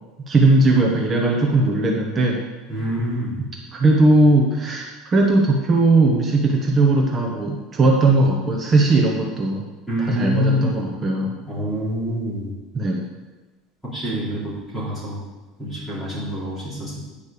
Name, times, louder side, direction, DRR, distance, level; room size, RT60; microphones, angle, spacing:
voice 1, 0.3-2.4 3.0-3.1 3.7-9.6 10.0-11.4 12.7-13.0, right 2 dB, 20° right, 0 dB, 1.0 m, -18 dB
voice 2, 2.7-3.3 9.9-10.8 11.5-12.5 13.9-15.2 15.6-17.0, equal, 5° left, -8 dB, 3.6 m, -26 dB
10.0 x 5.2 x 6.8 m, 1.2 s
cardioid pair, 165°, 0 cm